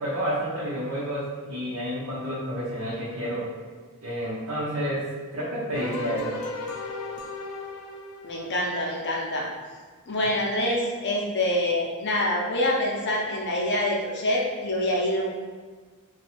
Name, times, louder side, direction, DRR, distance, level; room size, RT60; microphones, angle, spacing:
voice 1, 0.0-3.5 4.0-6.4, equal, 65° right, -9 dB, 0.8 m, -30 dB
sound 1, 5.7-9.0, left 2 dB, 90° left, 0.4 m, -36 dB
voice 2, 8.2-9.5 10.1-15.3, left 1 dB, 50° left, -3 dB, 0.7 m, -26 dB
2.7 x 2.3 x 4.2 m, 1.5 s
head